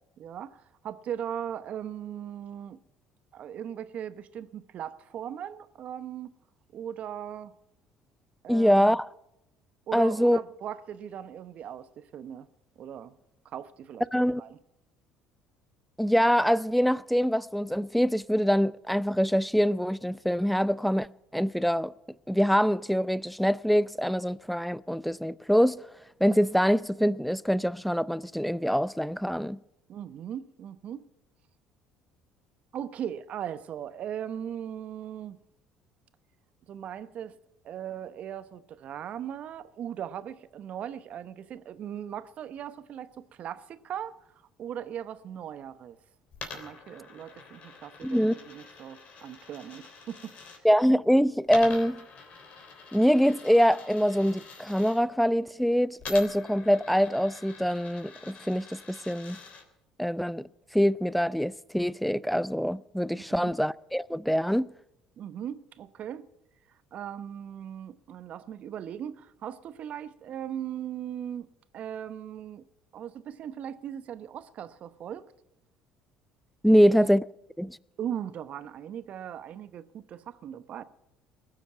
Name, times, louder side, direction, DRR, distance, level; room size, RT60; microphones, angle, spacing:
voice 1, 0.2-2.8 3.3-6.3 6.7-7.5 8.4-9.0 9.9-12.5 12.8-13.2 13.4-14.6 29.9-31.0 32.7-35.4 36.7-37.3 37.6-43.1 43.4-44.2 44.6-46.0 46.5-50.3 63.2-63.5 65.2-66.3 66.9-71.5 71.7-72.7 72.9-75.3 76.7-76.9 78.0-80.8, right 9 dB, 55° right, 0.9 m, -38 dB
voice 2, 8.5-9.1 9.9-10.4 14.1-14.4 16.0-21.1 21.3-21.9 22.3-25.8 26.2-29.6 48.0-48.3 50.6-52.0 52.9-59.4 60.0-60.4 60.7-64.7 76.6-77.3 77.6-77.8, equal, ahead, 0.5 m, -24 dB
Coin (dropping), 46.3-50.6 51.5-55.0 56.0-59.6, left 5 dB, 55° left, 3.3 m, -46 dB
20.5 x 7.2 x 8.7 m
hypercardioid pair, 65°, 3 cm